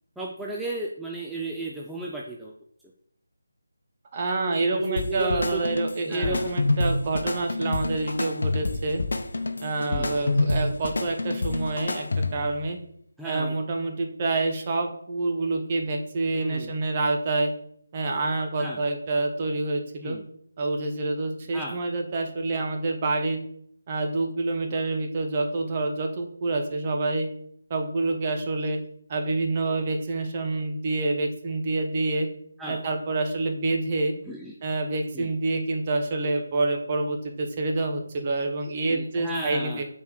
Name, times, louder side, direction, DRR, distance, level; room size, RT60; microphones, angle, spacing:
voice 1, 0.2-2.5 4.7-5.6 6.1-6.5 9.8-10.1 13.2-13.6 16.4-16.7 18.6-18.8 20.0-20.2 21.5-21.8 32.6-32.8 34.2-34.5 35.1-35.3 38.9-39.8, right 2 dB, ahead, -4 dB, 0.5 m, -35 dB
voice 2, 4.1-9.0 9.6-12.1 12.3-12.8 13.2-17.5 17.9-20.2 20.6-23.4 23.9-27.3 27.7-28.8 29.1-32.3 32.7-34.1 34.6-39.8, right 2 dB, 30° right, 3 dB, 1.1 m, -27 dB
sound 1, 5.0-12.6, left 2 dB, 65° left, 0.8 m, -27 dB
5.6 x 4.4 x 6.3 m, 0.66 s
figure-of-eight pair, 160°, 0 cm